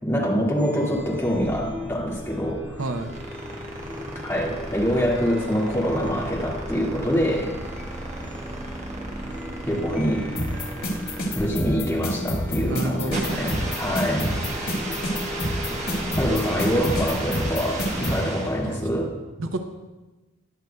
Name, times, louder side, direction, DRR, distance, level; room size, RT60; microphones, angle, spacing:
voice 1, 0.0-2.8 4.2-7.5 9.7-10.2 11.3-14.3 16.1-19.1, equal, 10° left, -5 dB, 1.9 m, -25 dB
Chime, 0.5-18.0, equal, 10° right, 1.5 m, -36 dB
sound 1, 2.8-18.7, right 2 dB, 30° right, 1.2 m, -35 dB
voice 2, 2.8-3.1 12.7-13.5 18.6-18.8 19.4-19.6, right 2 dB, 60° right, 5 dB, 0.7 m, -29 dB
sound 2, 10.4-18.2, left 1 dB, 70° left, 2.4 m, -27 dB
20.0 x 7.8 x 2.3 m, 1.1 s
head